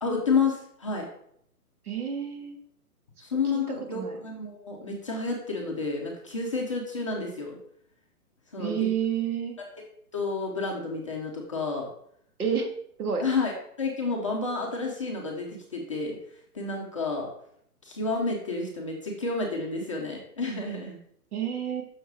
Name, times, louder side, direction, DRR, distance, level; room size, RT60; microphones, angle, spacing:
voice 1, 0.0-1.1 3.2-7.6 8.5-8.9 10.1-11.9 13.2-13.5 13.8-16.2 16.5-17.3 17.8-21.0, left 4 dB, 20° left, -2 dB, 0.6 m, -30 dB
voice 2, 1.8-2.6 3.5-3.6 3.9-4.2 8.6-9.6 12.4-12.7 13.0-13.2 21.3-21.8, right 8 dB, 65° right, 3 dB, 2.2 m, -29 dB
6.3 x 5.2 x 4.6 m, 0.70 s
hypercardioid pair, 160°, 47 cm